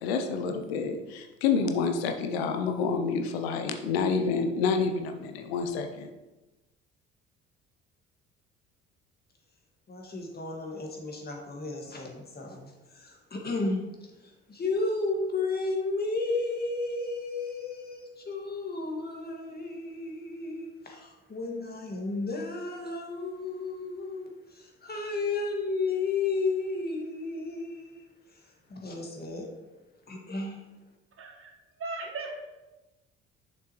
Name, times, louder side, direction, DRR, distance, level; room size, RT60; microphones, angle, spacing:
voice 1, 0.0-6.1, left 5 dB, 80° left, 6 dB, 0.7 m, -28 dB
voice 2, 9.9-28.4 28.7-29.5 30.1-30.6, left 3 dB, 30° left, 1 dB, 1.8 m, -33 dB
voice 3, 31.2-31.5 31.8-32.6, right 3 dB, 45° right, 2 dB, 1.5 m, -37 dB
6.8 x 6.1 x 3.1 m, 1.1 s
hypercardioid pair, 60°, 31 cm